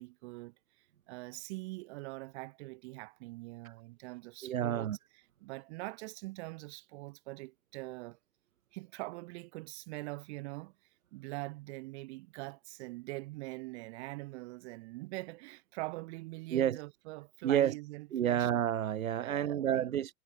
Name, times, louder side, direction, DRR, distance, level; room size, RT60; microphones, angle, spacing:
voice 1, 0.0-4.9 5.4-8.2 8.7-10.7 11.1-18.5 19.2-19.9, right 23 dB, 50° right, 7.6 m, -43 dB
voice 2, 4.4-5.0 16.5-16.8 17.4-17.7 18.1-20.1, right 10 dB, 75° right, 2.6 m, -30 dB
hypercardioid pair, 115°, 41 cm